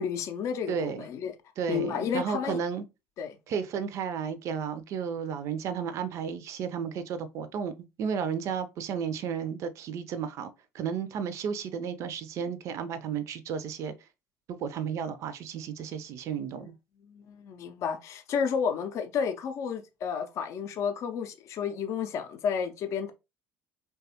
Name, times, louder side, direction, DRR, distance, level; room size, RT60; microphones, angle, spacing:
voice 1, 0.0-1.3 1.7-2.6 3.2-3.4 17.1-23.1, left 7 dB, 50° left, 0.5 m, -31 dB
voice 2, 0.7-1.1 1.6-2.8 3.5-10.5 10.7-13.9 14.5-16.7, right 7 dB, 50° right, 0.4 m, -33 dB
3.2 x 2.2 x 2.8 m
figure-of-eight pair, 60°, 7 cm